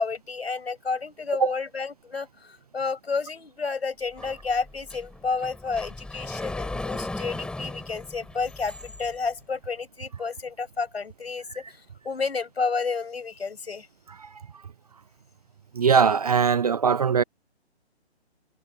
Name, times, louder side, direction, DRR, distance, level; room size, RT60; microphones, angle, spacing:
voice 1, 0.0-11.8 12.0-13.9, left 4 dB, 65° left, 6.5 m, -30 dB
Sliding door, 4.2-9.1, left 2 dB, 5° left, 7.8 m, -37 dB
voice 2, 15.8-17.2, right 6 dB, 35° right, 0.5 m, -20 dB
figure-of-eight pair, 135°, 33 cm